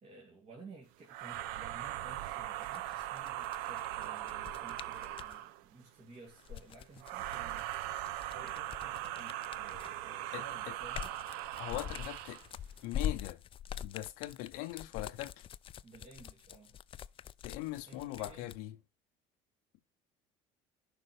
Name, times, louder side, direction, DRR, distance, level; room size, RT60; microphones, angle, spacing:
voice 1, 0.0-11.1 12.0-12.2 15.8-16.8 17.9-18.5, right 3 dB, 50° right, 2.6 m, -55 dB
sound 1, 1.1-5.6 7.0-12.5, right 14 dB, 80° right, 0.5 m, -40 dB
sound 2, 2.6-5.4 6.3-10.1 10.5-18.6, left 9 dB, 35° left, 0.3 m, -44 dB
voice 2, 11.6-12.4 12.8-13.4 13.8-15.4 17.4-18.8, left 16 dB, 80° left, 0.6 m, -40 dB
11.0 x 5.2 x 3.2 m
supercardioid pair, 90°, 15 cm